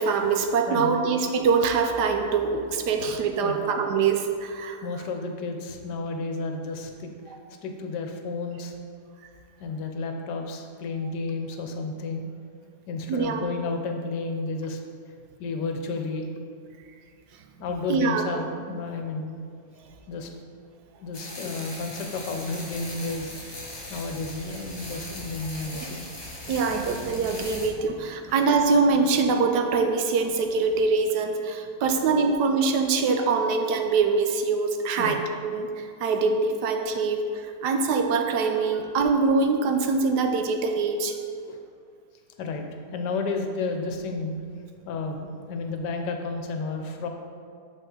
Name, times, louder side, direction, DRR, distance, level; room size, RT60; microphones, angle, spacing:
voice 1, 0.0-4.8 7.3-7.4 13.1-13.4 17.6-18.4 25.8-25.9 26.4-41.1, right 4 dB, 80° right, 5 dB, 1.2 m, -24 dB
voice 2, 0.7-1.0 3.4-3.7 4.8-7.3 7.6-8.7 9.6-12.2 12.9-14.8 15.4-16.3 17.6-19.4 20.1-20.3 21.0-26.1 28.2-28.4 31.9-32.0 32.3-32.4 33.5-33.6 35.0-35.2 36.6-36.7 38.5-38.6 40.0-40.1 41.5-41.6 42.4-44.3 44.9-47.1, left 3 dB, 90° left, 4 dB, 1.3 m, -32 dB
sound 1, 21.1-27.7, left 1 dB, 30° left, 0.5 m, -39 dB
6.3 x 5.4 x 3.8 m, 2.4 s
omnidirectional pair, 1.8 m